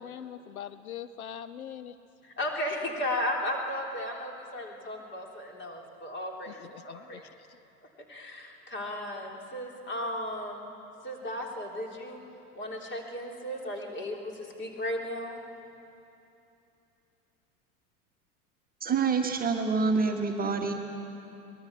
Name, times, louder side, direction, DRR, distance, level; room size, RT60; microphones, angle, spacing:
voice 1, 0.0-2.0 6.5-7.2, left 9 dB, 70° left, 0.7 m, -42 dB
voice 2, 2.2-7.2 8.1-10.7 11.0-12.2 12.5-15.4, left 1 dB, 25° left, 3.5 m, -35 dB
voice 3, 18.8-20.7, right 4 dB, 20° right, 1.5 m, -26 dB
23.0 x 19.5 x 7.0 m
figure-of-eight pair, 85°, 45 cm